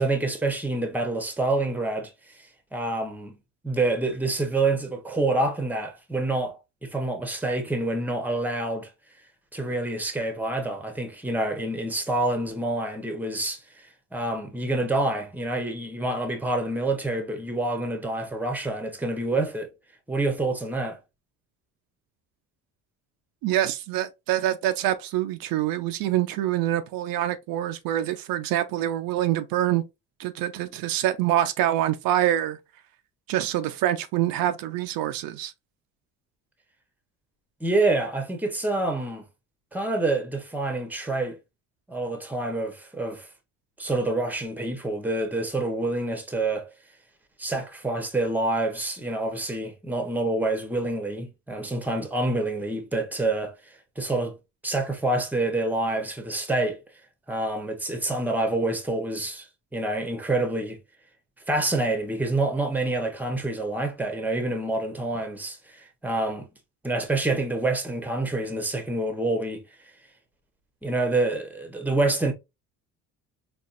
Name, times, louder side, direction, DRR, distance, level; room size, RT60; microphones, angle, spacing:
voice 1, 0.0-2.1 2.7-3.3 3.6-6.6 6.8-8.9 9.5-13.6 14.1-19.7 20.1-21.0 37.6-39.2 39.7-41.4 41.9-43.3 43.8-46.7 47.4-53.5 54.0-54.4 54.6-56.8 57.3-60.8 61.5-66.5 66.8-69.6 70.8-72.3, right 2 dB, 5° right, 0.8 m, -27 dB
voice 2, 23.4-29.8 30.2-32.6 33.3-35.5, right 13 dB, 75° right, 0.5 m, -25 dB
4.1 x 2.4 x 2.4 m
cardioid pair, 100°, 35 cm